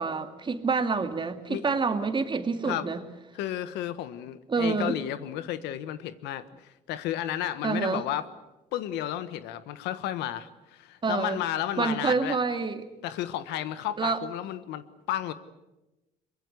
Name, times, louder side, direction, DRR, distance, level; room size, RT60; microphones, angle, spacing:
voice 1, 0.0-3.0 4.5-5.0 7.6-8.0 11.0-11.4 11.8-12.8 14.0-14.2, right 4 dB, 30° right, 7 dB, 2.1 m, -27 dB
voice 2, 3.3-8.3 8.7-12.4 13.0-15.3, left 12 dB, 90° left, 13 dB, 1.3 m, -32 dB
23.5 x 22.0 x 8.0 m, 1.0 s
cardioid pair, 110°, 17 cm